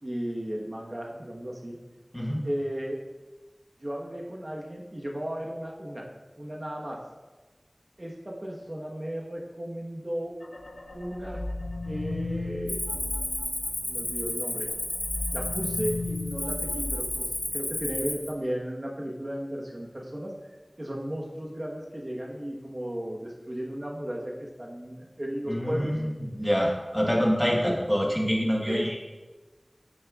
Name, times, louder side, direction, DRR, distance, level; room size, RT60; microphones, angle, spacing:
voice 1, 0.0-1.8 2.4-3.0 3.8-6.1 6.4-7.0 8.0-10.3 10.9-11.4 11.8-12.8 13.8-14.7 15.3-20.3 20.8-25.9 27.5-27.7 28.6-28.9, equal, 45° right, -2 dB, 1.3 m, -35 dB
sound 1, 10.4-14.3 14.7-18.1, left 2 dB, 90° left, 0.5 m, -36 dB
Cricket, 12.7-18.3, left 1 dB, 65° left, 1.1 m, -32 dB
voice 2, 25.5-29.0, equal, 10° left, -1 dB, 1.4 m, -26 dB
9.4 x 6.3 x 2.5 m, 1.2 s
wide cardioid pair, 45°, 0 cm